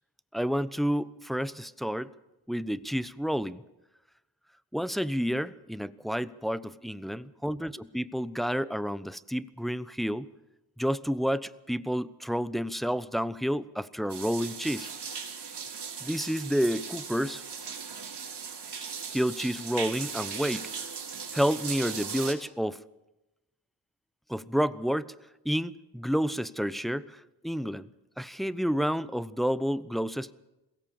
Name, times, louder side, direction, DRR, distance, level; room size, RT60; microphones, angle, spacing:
voice 1, 0.3-2.1 2.5-3.6 4.7-10.3 10.8-14.9 16.0-17.4 19.1-20.9 21.3-22.8 24.3-25.1 25.4-27.9 28.2-30.3, equal, ahead, 16 dB, 0.9 m, -30 dB
sound 1, 14.1-22.3, right 6 dB, 55° right, 3.5 m, -38 dB
22.0 x 16.5 x 7.3 m, 0.97 s
supercardioid pair, 45°, 47 cm